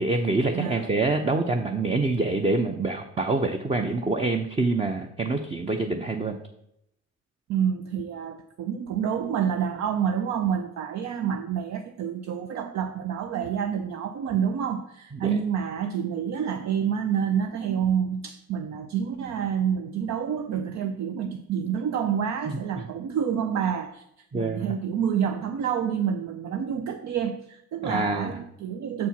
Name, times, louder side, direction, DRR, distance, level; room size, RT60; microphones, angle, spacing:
voice 1, 0.0-6.4 15.1-15.4 22.5-22.6 24.3-24.7 27.8-28.4, right 3 dB, 20° right, 5 dB, 0.6 m, -26 dB
voice 2, 0.5-0.9 7.5-24.0 24.3-29.1, right 8 dB, 65° right, 7 dB, 0.6 m, -28 dB
7.3 x 4.4 x 5.7 m, 0.79 s
cardioid pair, 90°, 30 cm